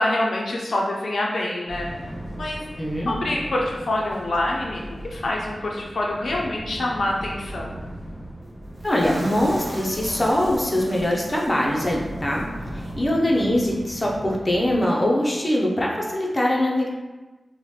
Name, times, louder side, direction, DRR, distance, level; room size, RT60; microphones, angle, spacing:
voice 1, 0.0-1.9 2.3-2.6 3.1-7.8, left 1 dB, 80° left, -2 dB, 0.4 m, -26 dB
sound 1, 1.7-14.8, right 1 dB, 5° left, 1.3 m, -38 dB
voice 2, 2.8-3.1 8.8-12.4 13.0-16.9, left 1 dB, 25° left, -2 dB, 0.5 m, -22 dB
sound 2, 8.8-12.0 12.3-12.4 12.8-12.9, right 1 dB, 40° right, 0.5 m, -37 dB
2.9 x 2.1 x 3.1 m, 1.2 s
wide cardioid pair, 85°, 0 cm